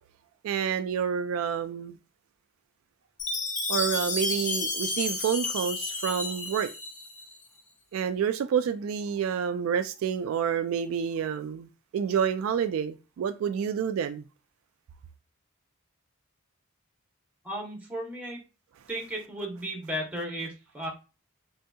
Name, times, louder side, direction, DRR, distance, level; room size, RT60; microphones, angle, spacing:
voice 1, 0.4-2.0 3.7-6.7 7.9-14.3, right 7 dB, 70° right, 0.3 m, -28 dB
Chime, 3.2-7.3, left 2 dB, 35° left, 0.7 m, -31 dB
voice 2, 17.4-18.4 18.9-20.9, equal, 5° right, 0.9 m, -35 dB
3.4 x 2.7 x 2.2 m
head